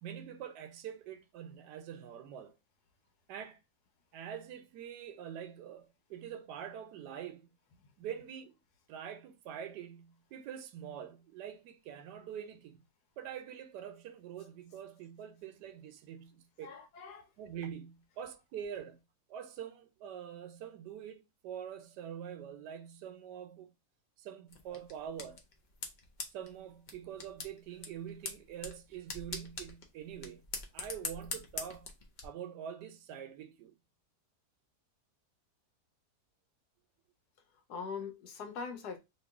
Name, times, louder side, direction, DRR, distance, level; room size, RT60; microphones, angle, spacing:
voice 1, 0.0-2.5 3.3-3.6 4.1-7.5 8.0-8.5 8.9-12.8 13.2-16.7 17.4-19.0 19.3-23.7 24.2-25.4 26.3-30.4 30.7-31.9 32.2-33.7, right 9 dB, 90° right, 1.2 m, -45 dB
voice 2, 16.6-17.2 37.7-39.0, left 5 dB, 80° left, 1.3 m, -42 dB
sound 1, 24.5-32.2, left 4 dB, 60° left, 0.4 m, -44 dB
2.9 x 2.6 x 3.4 m
omnidirectional pair, 1.7 m